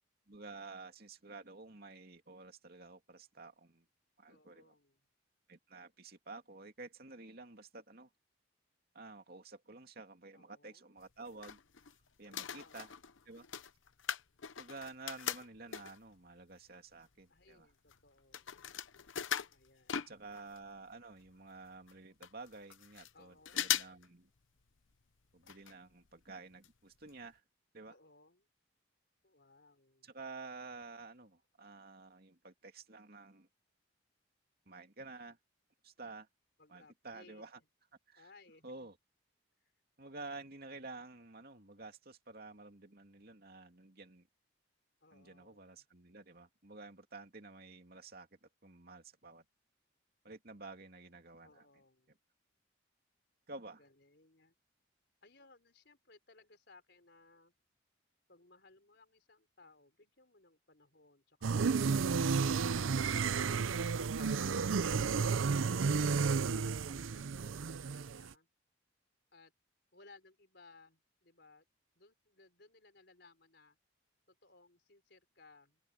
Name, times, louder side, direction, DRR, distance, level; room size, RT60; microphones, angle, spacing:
voice 1, 0.3-3.9 4.2-4.7 5.5-8.1 8.9-11.6 12.2-12.9 13.3-13.5 14.6-17.7 20.1-24.3 25.3-27.4 27.7-27.9 30.0-33.5 34.7-35.4 35.8-36.3 36.7-37.6 38.1-38.3 38.6-39.0 40.0-44.3 45.1-49.4 50.2-51.6 53.5-53.8 63.9-64.0 64.3-64.4, right 3 dB, 50° right, 2.6 m, -51 dB
voice 2, 4.3-5.0 10.3-10.9 12.2-12.8 17.3-18.6 19.5-20.2 23.1-23.7 27.9-28.5 29.2-30.1 36.6-37.4 38.1-38.9 39.6-39.7 45.0-45.8 51.4-52.1 53.8-54.5 55.2-57.5 58.3-62.6 63.2-68.5 69.3-69.5 69.9-71.7 71.9-73.8 74.3-75.8, left 3 dB, 60° left, 4.9 m, -62 dB
sound 1, 11.0-12.0 12.2-16.1 16.7-16.8 17.0-20.6 20.9-21.0 21.2-21.3 21.9-22.0 22.2-23.1 23.5-24.1 24.4-24.5 25.4-25.7 26.1-26.2 26.6-26.7 27.1-27.2, left 9 dB, 80° left, 0.9 m, -40 dB
sound 2, 61.4-68.3, right 5 dB, 85° right, 0.5 m, -32 dB
open air
head